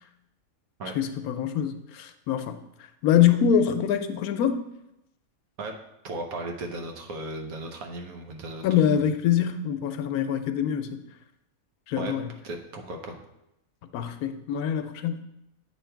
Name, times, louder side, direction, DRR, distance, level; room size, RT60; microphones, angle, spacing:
voice 1, 0.9-2.6 3.0-4.6 8.6-11.0 11.9-12.3 13.9-15.2, left 9 dB, 90° left, 8 dB, 1.1 m, -24 dB
voice 2, 6.0-9.1 12.0-12.1 12.4-13.2, right 2 dB, 80° right, 3 dB, 1.3 m, -36 dB
8.3 x 3.1 x 4.5 m, 0.86 s
omnidirectional pair, 1.5 m